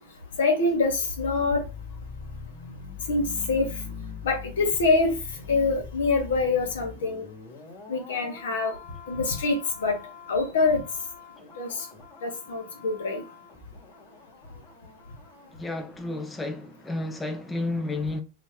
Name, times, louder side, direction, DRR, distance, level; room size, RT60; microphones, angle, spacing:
voice 1, 0.4-1.6 3.1-3.6 4.2-5.2 5.5-7.2 7.9-8.8 9.1-9.9 10.3-10.8 11.6-11.8 12.2-13.2, left 3 dB, 80° left, 1.1 m, -25 dB
sound 1, 0.6-15.6 15.9-16.0, left 6 dB, 40° left, 1.4 m, -43 dB
voice 2, 15.5-18.2, left 2 dB, 15° left, 0.5 m, -31 dB
2.8 x 2.8 x 3.5 m
hypercardioid pair, 100°, 0 cm